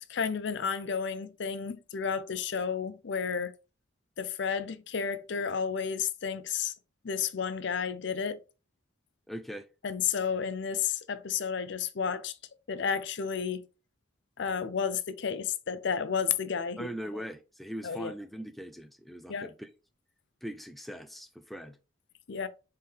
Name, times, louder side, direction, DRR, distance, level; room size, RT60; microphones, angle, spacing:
voice 1, 0.1-3.5 4.2-6.7 7.0-8.4 9.8-12.3 12.7-13.6 14.4-16.9 17.8-18.1 19.3-19.5 22.3-22.5, left 6 dB, 60° left, 0.5 m, -32 dB
voice 2, 9.3-9.7 16.8-19.7 20.4-21.8, equal, ahead, 0.3 m, -41 dB
4.2 x 3.8 x 3.3 m
head